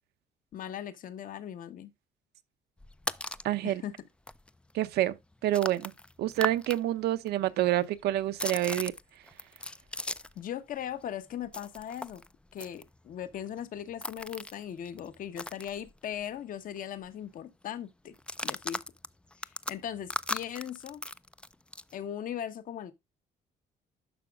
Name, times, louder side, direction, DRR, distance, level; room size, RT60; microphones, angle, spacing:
voice 1, 0.5-1.9 3.6-3.9 10.3-12.2 12.5-18.2 18.4-18.8 19.4-21.0 21.9-22.9, left 10 dB, 55° left, 1.1 m, -39 dB
sound 1, 2.8-3.5 4.0-4.1 4.3-6.8 7.1-10.5 10.7-16.4 16.7-16.8 17.0-17.4 18.1-21.9, left 2 dB, 5° left, 0.3 m, -39 dB
voice 2, 3.4-3.8 4.7-5.2 5.4-5.9 6.2-8.9, right 14 dB, 75° right, 0.7 m, -27 dB
11.0 x 6.0 x 2.3 m
cardioid pair, 110°, 17 cm